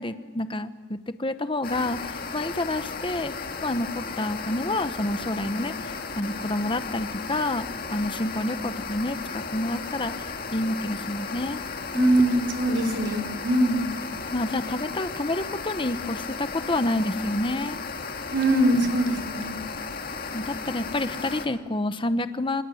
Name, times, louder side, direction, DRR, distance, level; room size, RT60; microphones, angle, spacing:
voice 1, 0.0-3.3 3.6-11.6 11.9-12.1 14.3-17.8 20.3-22.6, left 1 dB, 30° left, 10 dB, 1.0 m, -29 dB
sound 1, 1.6-21.5, left 4 dB, 55° left, 2.1 m, -35 dB
voice 2, 12.0-13.8 18.3-19.5, right 1 dB, 70° right, 2 dB, 3.8 m, -22 dB
28.0 x 25.5 x 7.8 m, 1.3 s
head